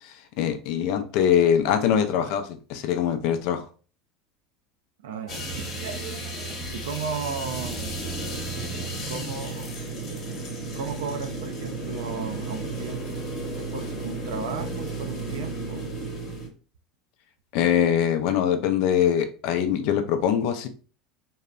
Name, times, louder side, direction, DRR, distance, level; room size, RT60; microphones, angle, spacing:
voice 1, 0.0-3.6 17.5-20.7, left 9 dB, 65° left, 8 dB, 0.4 m, -23 dB
voice 2, 5.0-8.0 9.1-9.7 10.1-10.4 10.8-13.2 13.6-15.9, right 5 dB, 75° right, 7 dB, 0.3 m, -35 dB
sound 1, 5.3-16.5, right 2 dB, 50° left, 0.9 m, -33 dB
2.7 x 2.0 x 2.4 m, 0.38 s
hypercardioid pair, 85°, 0 cm